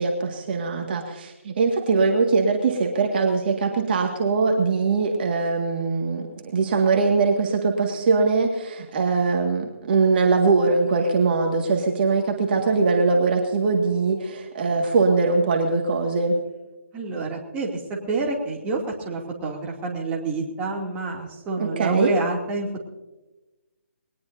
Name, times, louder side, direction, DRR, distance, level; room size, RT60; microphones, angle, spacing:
voice 1, 0.0-16.4 21.6-22.1, right 4 dB, 45° right, 2 dB, 2.0 m, -22 dB
voice 2, 16.9-17.8 18.1-22.8, right 3 dB, 15° right, -1 dB, 2.7 m, -28 dB
21.0 x 19.0 x 2.7 m, 1.1 s
figure-of-eight pair, 150°, 8 cm